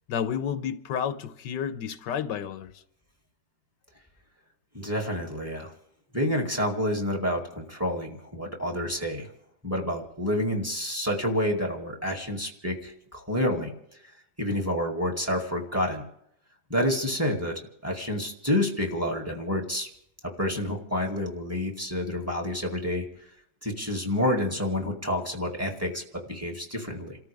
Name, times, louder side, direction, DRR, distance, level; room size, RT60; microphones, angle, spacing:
voice 1, 0.1-2.7, left 8 dB, 85° left, 1.4 m, -31 dB
voice 2, 4.7-5.7 6.1-9.3 9.6-13.7 14.4-16.0 16.7-19.9 20.2-23.1 23.6-27.2, left 1 dB, 10° right, 2.2 m, -29 dB
29.5 x 14.0 x 3.5 m
omnidirectional pair, 1.9 m